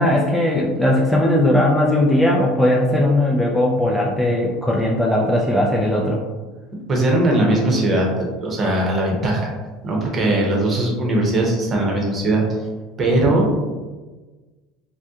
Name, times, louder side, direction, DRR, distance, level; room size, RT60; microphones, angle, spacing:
voice 1, 0.0-6.2, left 1 dB, 5° left, -2 dB, 0.4 m, -18 dB
voice 2, 6.9-9.5 9.8-12.4 13.0-13.5, right 1 dB, 30° right, -1 dB, 0.9 m, -19 dB
2.8 x 2.1 x 3.6 m, 1.3 s
supercardioid pair, 110°, 0 cm